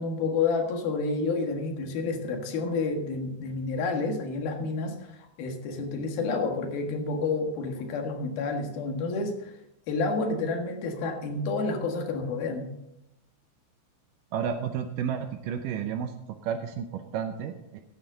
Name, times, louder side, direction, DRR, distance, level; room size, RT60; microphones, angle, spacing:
voice 1, 0.0-9.5 9.9-12.7, left 3 dB, 75° left, 4 dB, 3.4 m, -29 dB
voice 2, 14.3-16.1 16.4-17.8, right 7 dB, 75° right, 7 dB, 2.1 m, -31 dB
16.0 x 9.3 x 3.9 m, 0.86 s
omnidirectional pair, 4.3 m